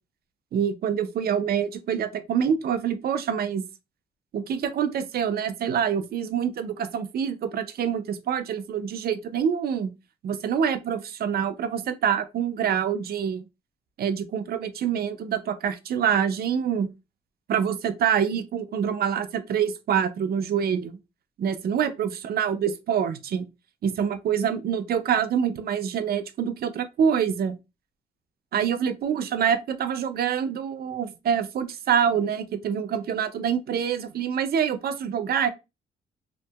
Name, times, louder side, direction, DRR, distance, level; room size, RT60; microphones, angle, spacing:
voice 1, 0.5-3.6 4.3-9.9 10.2-13.4 14.0-16.9 17.5-21.0 21.4-23.4 23.8-27.5 28.5-35.5, right 8 dB, 60° right, 0.5 m, -26 dB
2.7 x 2.5 x 2.3 m
cardioid pair, 75°, 18 cm